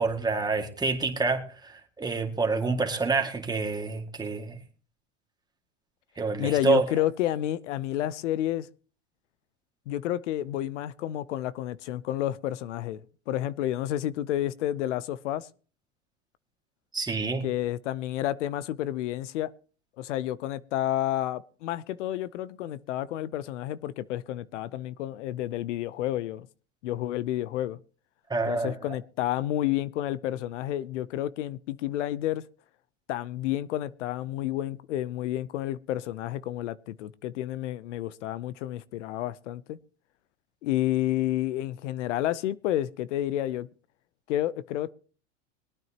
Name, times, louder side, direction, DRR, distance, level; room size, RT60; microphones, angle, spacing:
voice 1, 0.0-4.6 6.2-6.9 16.9-17.5 28.3-28.8, right 4 dB, 10° right, 2.0 m, -27 dB
voice 2, 6.4-8.7 9.9-13.0 13.3-15.5 17.4-19.5 20.0-26.5 26.8-27.8 28.5-32.4 33.1-39.8 40.6-43.7 44.3-44.9, left 13 dB, 80° left, 0.7 m, -30 dB
22.0 x 9.2 x 2.9 m
supercardioid pair, 120°, 35 cm